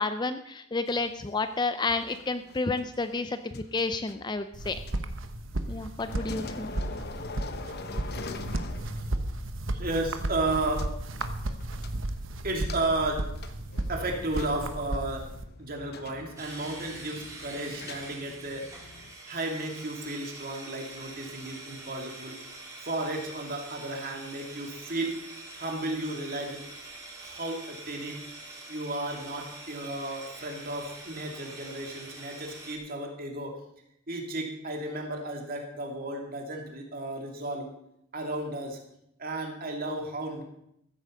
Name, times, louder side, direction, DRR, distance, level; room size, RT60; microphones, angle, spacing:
voice 1, 0.0-4.8 5.7-6.7, left 3 dB, 20° left, 10 dB, 0.4 m, -30 dB
sound 1, 0.9-5.7 6.0-9.4 9.6-9.7 10.8-10.9 11.2-12.2 12.7-19.1, left 3 dB, 45° left, 0.9 m, -44 dB
sound 2, 4.5-15.4, right 1 dB, 60° right, 1.1 m, -34 dB
voice 2, 9.7-10.9 12.4-13.3 13.9-15.3 15.6-18.7 19.3-22.4 22.8-25.2 25.5-26.6 27.2-28.2 28.7-33.6 34.1-37.7 38.1-38.8 39.2-40.4, right 2 dB, 40° right, 1 dB, 2.6 m, -33 dB
sound 3, 16.4-32.8, right 2 dB, 15° right, 2.6 m, -45 dB
14.5 x 8.5 x 6.6 m, 0.77 s
head